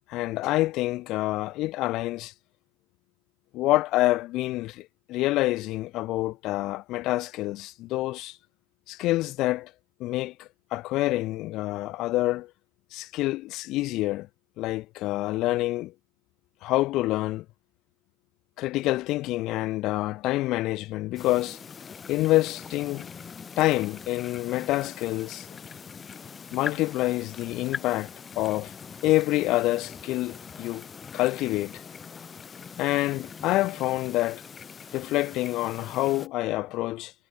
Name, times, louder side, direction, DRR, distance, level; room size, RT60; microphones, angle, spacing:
voice 1, 0.1-2.3 3.5-8.4 8.9-9.7 10.0-12.5 12.9-14.3 14.6-15.9 16.6-17.4 18.6-21.6 22.1-23.1 23.6-25.5 26.5-28.7 29.0-30.9 31.1-31.8 32.8-34.4 34.9-37.1, left 17 dB, 45° left, 0.9 m, -27 dB
sound 1, 21.1-36.3, left 6 dB, 20° left, 1.8 m, -42 dB
hypercardioid pair, 95°, 0 cm